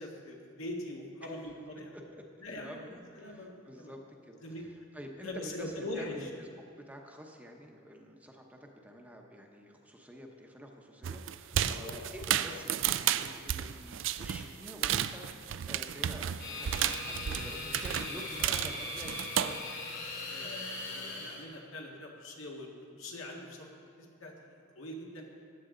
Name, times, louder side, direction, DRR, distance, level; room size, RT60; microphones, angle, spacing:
voice 1, 0.0-2.0 2.4-2.9 3.2-3.9 4.4-4.7 5.2-6.3 11.6-12.6 17.6-17.7 20.2-23.7 24.0-25.3, left 1 dB, 80° left, -1 dB, 1.8 m, -43 dB
voice 2, 1.9-2.2 2.5-4.0 4.3-6.5 6.9-19.8, equal, 5° right, 1 dB, 0.9 m, -48 dB
sound 1, 11.0-19.6, right 10 dB, 65° right, 0.4 m, -32 dB
sound 2, 16.4-21.4, left 2 dB, 60° left, 2.7 m, -40 dB
14.5 x 10.5 x 3.8 m, 2.3 s
head